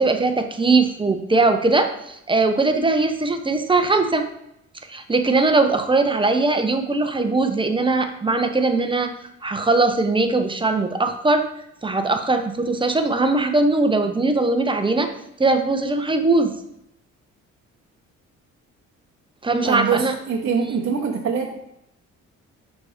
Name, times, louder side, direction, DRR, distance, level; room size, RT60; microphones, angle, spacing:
voice 1, 0.0-4.2 4.9-9.1 9.4-11.5 11.8-15.1 15.4-16.5 19.4-20.1 20.7-20.8, right 3 dB, 15° right, 6 dB, 0.8 m, -20 dB
voice 2, 19.6-21.5, right 6 dB, 45° right, -2 dB, 0.9 m, -24 dB
6.0 x 4.2 x 5.0 m, 0.79 s
cardioid pair, 90°, 30 cm